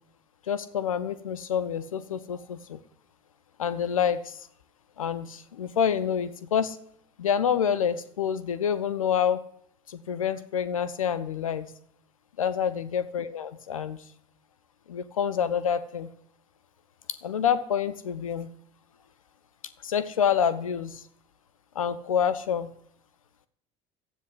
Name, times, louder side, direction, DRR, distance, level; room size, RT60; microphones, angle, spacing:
voice 1, 0.5-2.8 3.6-4.5 5.0-6.8 7.2-9.4 9.9-11.7 12.4-14.0 14.9-16.1 17.2-18.5 19.8-21.0 21.8-22.7, left 8 dB, 85° left, 14 dB, 0.7 m, -27 dB
13.0 x 9.2 x 8.2 m, 0.68 s
hypercardioid pair, 65°, 17 cm